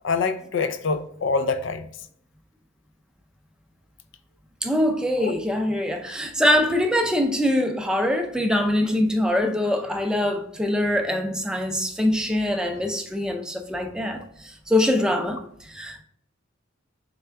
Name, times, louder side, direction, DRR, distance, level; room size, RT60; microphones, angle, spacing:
voice 1, 0.0-1.9 5.2-5.4, left 4 dB, 65° left, 0.4 m, -25 dB
voice 2, 4.6-16.0, left 1 dB, 5° right, 0.4 m, -23 dB
3.6 x 3.4 x 3.3 m
head